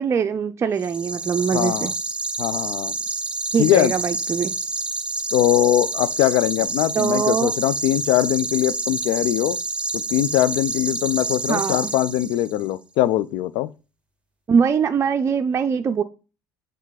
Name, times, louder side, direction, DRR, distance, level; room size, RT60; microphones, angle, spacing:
voice 1, 0.0-1.9 3.5-4.5 6.9-7.5 11.5-11.9 14.5-16.0, right 6 dB, 30° right, 0.5 m, -22 dB
sound 1, 0.8-12.6, right 3 dB, 10° right, 1.0 m, -28 dB
voice 2, 1.5-1.9 2.4-2.9 3.6-3.9 5.3-9.6 10.1-13.7, left 14 dB, 65° left, 0.5 m, -21 dB
6.3 x 3.8 x 4.0 m
hypercardioid pair, 75°, 9 cm